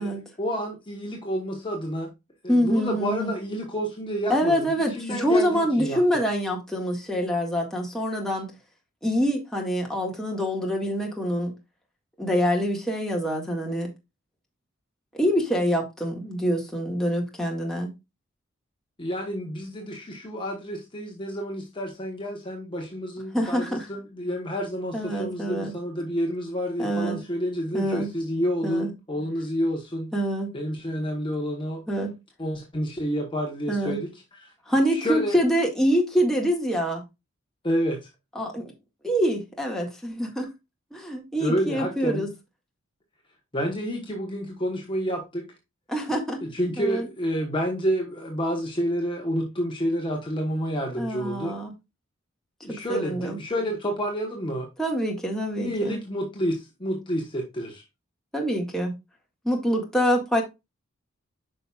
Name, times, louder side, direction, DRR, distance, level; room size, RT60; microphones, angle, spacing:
voice 1, 0.0-2.1 2.4-6.0 19.0-30.1 30.5-31.8 32.4-34.5 34.9-35.4 37.6-38.1 41.4-42.3 43.5-45.5 46.4-51.6 52.6-54.7 55.6-57.8, equal, 25° left, 1.2 m, -29 dB
voice 2, 2.5-3.3 4.3-8.5 9.0-11.5 12.2-13.9 15.1-17.9 23.3-23.9 24.9-25.7 26.8-27.2 27.7-28.1 28.6-28.9 30.1-30.5 31.9-32.1 33.7-34.0 34.7-37.0 38.4-38.6 39.0-40.5 40.9-42.3 45.9-46.4 46.8-47.1 51.0-51.7 52.7-53.4 54.8-56.0 58.3-58.9 59.5-60.4, equal, ahead, 1.8 m, -25 dB
9.0 x 5.4 x 2.4 m
head